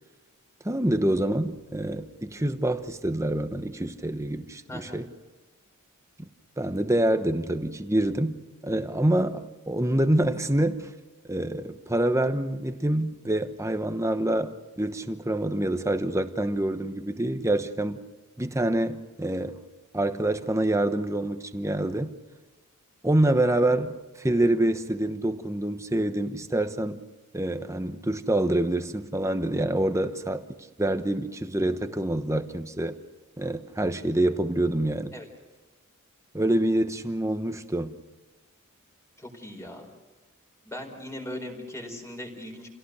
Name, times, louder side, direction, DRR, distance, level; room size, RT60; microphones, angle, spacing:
voice 1, 0.6-5.1 6.6-10.9 11.2-18.0 18.4-19.6 19.9-22.1 23.0-27.0 27.3-30.4 30.8-33.0 33.4-35.1 36.3-37.9, right 1 dB, 15° right, 1.1 m, -26 dB
voice 2, 4.7-5.0 35.1-35.3 39.2-39.9 40.6-42.7, left 1 dB, 15° left, 4.6 m, -39 dB
29.5 x 17.5 x 6.7 m
head